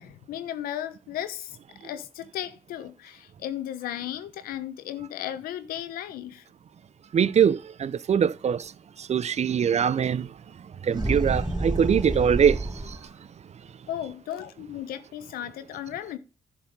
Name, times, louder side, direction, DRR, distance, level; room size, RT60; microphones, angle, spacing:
voice 1, 0.0-6.5 13.9-16.2, left 11 dB, 80° left, 1.0 m, -35 dB
voice 2, 7.1-8.6 9.1-10.3 10.9-12.6, right 8 dB, 50° right, 0.5 m, -22 dB
sound 1, 10.9-13.1, right 2 dB, 25° right, 3.7 m, -29 dB
11.5 x 4.7 x 5.3 m
hypercardioid pair, 45°, 15 cm